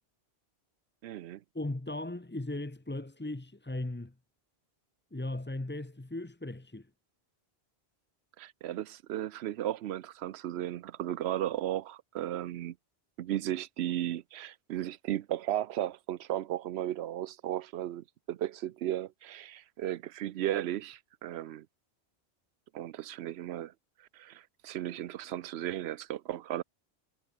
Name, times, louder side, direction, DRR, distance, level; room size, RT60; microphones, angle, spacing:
voice 1, 1.0-1.4 8.4-12.7 13.2-21.7 22.7-23.7 24.1-26.6, right 12 dB, 80° right, 0.9 m, -35 dB
voice 2, 1.5-4.1 5.1-6.9, left 2 dB, 10° left, 0.8 m, -37 dB
omnidirectional pair, 1.1 m